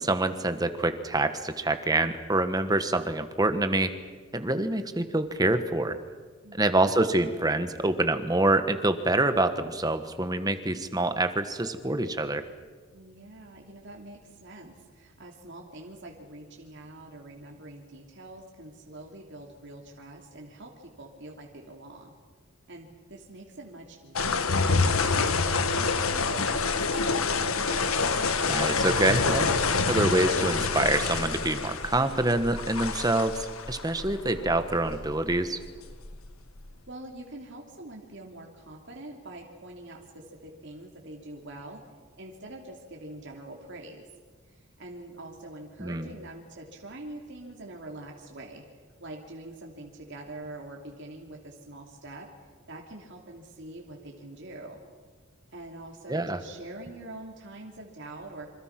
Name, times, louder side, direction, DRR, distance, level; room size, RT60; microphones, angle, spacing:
voice 1, 0.0-3.9 4.3-6.0 6.6-12.4 28.5-29.5 29.9-35.6 45.8-46.1 56.1-56.4, right 2 dB, 15° right, 10 dB, 1.4 m, -26 dB
voice 2, 6.4-6.9 12.9-22.1 22.7-27.1 36.9-41.8 42.2-44.0 44.5-48.6 49.0-52.3 52.7-54.8 55.5-58.5, right 2 dB, 55° right, 0 dB, 3.0 m, -44 dB
sound 1, 24.2-36.7, left 4 dB, 75° left, 1.6 m, -27 dB
27.5 x 26.5 x 6.0 m, 1.5 s
head